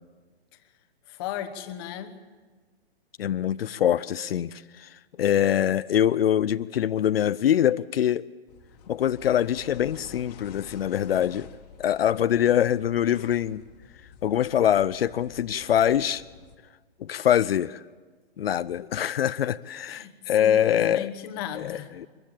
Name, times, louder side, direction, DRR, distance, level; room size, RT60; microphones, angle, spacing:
voice 1, 1.1-2.2 19.9-20.1 20.4-21.9, left 10 dB, 20° left, 9 dB, 1.1 m, -36 dB
voice 2, 3.2-8.3 8.9-11.5 11.8-13.6 14.2-16.2 17.0-17.8 18.4-21.1 21.6-22.1, left 10 dB, 70° left, 14 dB, 0.6 m, -24 dB
sound 1, 8.5-16.6, left 7 dB, 40° left, 1.5 m, -49 dB
23.0 x 15.0 x 8.8 m, 1.4 s
hypercardioid pair, 165°, 31 cm